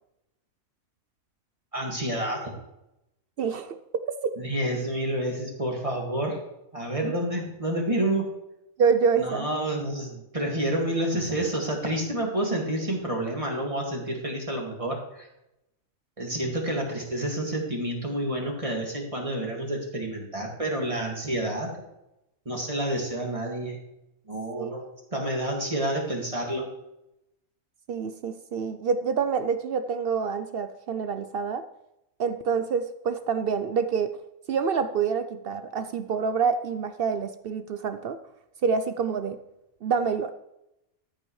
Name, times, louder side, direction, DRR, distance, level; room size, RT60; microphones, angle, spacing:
voice 1, 1.7-2.5 4.4-6.4 6.7-8.3 9.2-15.3 16.2-21.7 22.5-23.8 24.3-26.7, right 1 dB, 25° right, 0 dB, 2.0 m, -29 dB
voice 2, 3.4-4.3 7.0-7.2 8.8-9.5 24.6-24.7 27.9-31.6 32.2-34.2 34.5-38.2 38.6-39.4 39.8-40.3, right 6 dB, 65° right, 10 dB, 0.6 m, -27 dB
13.5 x 8.0 x 3.2 m, 0.88 s
omnidirectional pair, 1.4 m